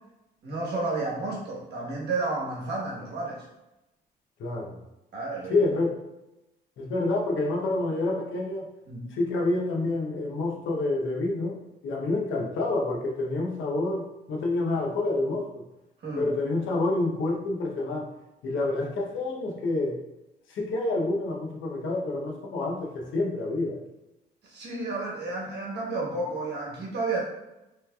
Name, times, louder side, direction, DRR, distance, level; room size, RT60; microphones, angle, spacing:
voice 1, 0.4-3.5 5.1-5.6 8.9-9.1 16.0-16.3 24.4-27.2, right 3 dB, 55° right, -3 dB, 1.2 m, -31 dB
voice 2, 4.4-4.8 5.5-6.0 6.8-8.7 9.1-15.5 16.2-18.1 18.4-20.0 20.5-23.8, left 2 dB, 75° left, -1 dB, 0.8 m, -28 dB
3.2 x 3.2 x 2.3 m, 0.95 s
cardioid pair, 90°, 20 cm